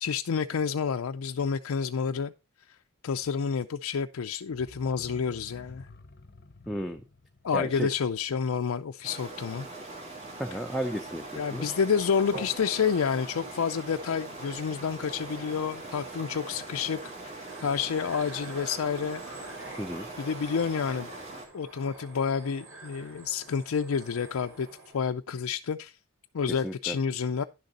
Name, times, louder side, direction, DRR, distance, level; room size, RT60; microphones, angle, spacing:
voice 1, 0.0-2.3 3.0-5.9 7.4-9.7 11.4-19.2 20.2-21.1 21.5-24.7 24.9-25.9 26.3-27.4, left 6 dB, 85° left, 0.4 m, -29 dB
sound 1, 4.5-9.2 9.5-9.6, left 2 dB, 45° left, 0.7 m, -51 dB
voice 2, 6.7-7.0 7.5-7.9 10.4-11.8 19.8-20.1 26.5-27.0, equal, ahead, 0.6 m, -34 dB
sound 2, 9.0-21.4, right 2 dB, 35° right, 2.6 m, -42 dB
sound 3, 11.1-25.1, right 2 dB, 75° right, 5.1 m, -47 dB
11.0 x 6.5 x 4.0 m
head